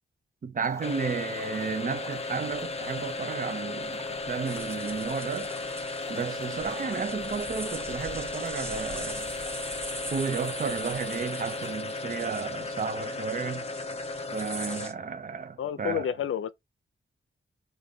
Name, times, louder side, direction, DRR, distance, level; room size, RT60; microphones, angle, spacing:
voice 1, 0.4-5.5 6.1-9.3 10.1-13.7 14.3-16.1, right 5 dB, 40° right, 0.5 m, -33 dB
sound 1, 0.6-11.8, left 2 dB, 15° left, 1.0 m, -48 dB
sound 2, 0.8-15.1, left 2 dB, 30° left, 0.5 m, -35 dB
sound 3, 4.5-14.9, right 1 dB, 10° right, 0.9 m, -43 dB
voice 2, 15.6-16.5, left 9 dB, 80° left, 0.5 m, -30 dB
3.6 x 2.6 x 3.9 m
wide cardioid pair, 125°, 21 cm